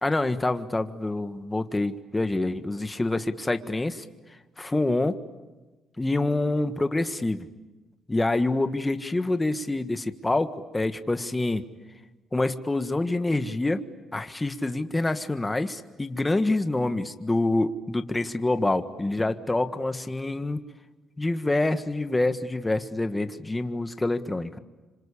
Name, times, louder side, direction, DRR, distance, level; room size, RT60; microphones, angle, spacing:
voice 1, 0.0-4.0 4.6-5.2 6.0-7.5 8.1-11.6 12.3-13.8 14.1-20.6 21.2-24.6, left 2 dB, 15° left, 9 dB, 1.6 m, -26 dB
27.0 x 26.0 x 8.5 m, 1.2 s
cardioid pair, 90°, 0 cm